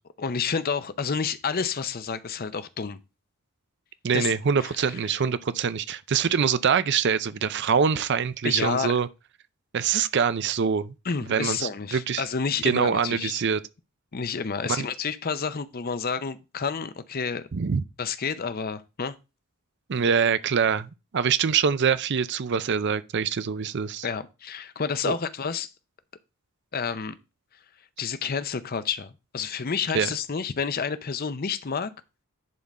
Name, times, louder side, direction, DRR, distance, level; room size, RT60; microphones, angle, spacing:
voice 1, 0.2-3.0 4.1-4.3 4.8-4.9 8.4-9.0 11.1-13.4 14.1-17.5 18.0-19.2 24.0-25.7 26.7-27.1 28.0-31.9, left 5 dB, 40° left, 0.6 m, -29 dB
voice 2, 4.0-9.1 9.7-10.9 11.3-12.2 12.6-13.6 14.7-14.9 17.5-17.8 19.9-24.1 25.0-25.2 29.9-30.2, right 6 dB, 50° right, 0.5 m, -24 dB
10.5 x 3.7 x 4.2 m
head